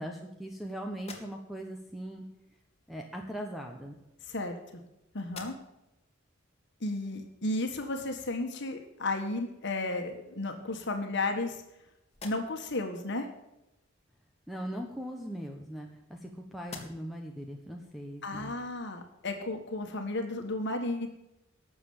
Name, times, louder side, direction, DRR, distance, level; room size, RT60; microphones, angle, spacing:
voice 1, 0.0-2.2 2.9-4.0 14.5-18.5, equal, ahead, 2 dB, 1.1 m, -40 dB
sound 1, 0.9-1.8 2.9-3.1 4.0-4.9 5.2-5.9 6.4-6.5 9.2-9.3 9.8-10.4 11.0-11.7 12.1-12.8 14.8-16.2 16.6-17.3, left 4 dB, 30° left, 2.2 m, -50 dB
voice 2, 4.2-4.8 5.1-5.5 6.8-11.6 12.2-13.3 18.2-21.1, left 2 dB, 60° left, 5 dB, 1.6 m, -33 dB
12.0 x 7.1 x 8.8 m, 0.92 s
head